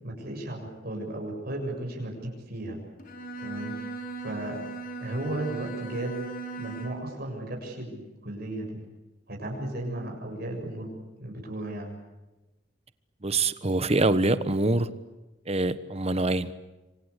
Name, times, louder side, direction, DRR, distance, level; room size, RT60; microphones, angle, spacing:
voice 1, 0.0-2.8 3.4-3.7 4.2-4.6 5.0-6.2 6.6-8.8 9.3-12.0, right 1 dB, 55° right, 1 dB, 7.1 m, -35 dB
Bowed string instrument, 3.0-7.2, right 4 dB, 50° left, 4.1 m, -38 dB
voice 2, 13.2-14.9 15.5-16.6, right 2 dB, 35° right, 13 dB, 1.2 m, -25 dB
27.5 x 24.5 x 8.4 m, 1.1 s
head